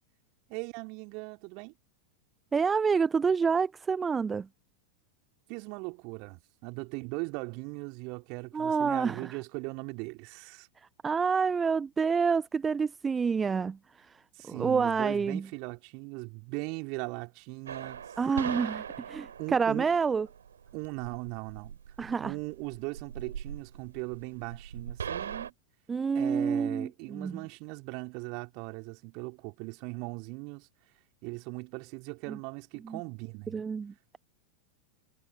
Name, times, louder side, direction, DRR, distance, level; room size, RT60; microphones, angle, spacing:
voice 1, 0.5-1.7 5.5-10.7 14.3-18.1 19.4-20.0 20.7-21.8 22.2-25.5 26.1-30.7 31.2-33.6, right 33 dB, 45° right, 3.5 m, -39 dB
voice 2, 2.5-4.5 8.5-9.4 11.0-13.8 14.5-15.5 18.2-20.3 22.0-22.3 25.9-27.4 32.3-32.4 32.8-33.0 33.5-34.2, right 5 dB, 15° right, 0.9 m, -28 dB
sound 1, 17.7-25.5, right 8 dB, 65° right, 4.6 m, -40 dB
figure-of-eight pair, 90°, 0 cm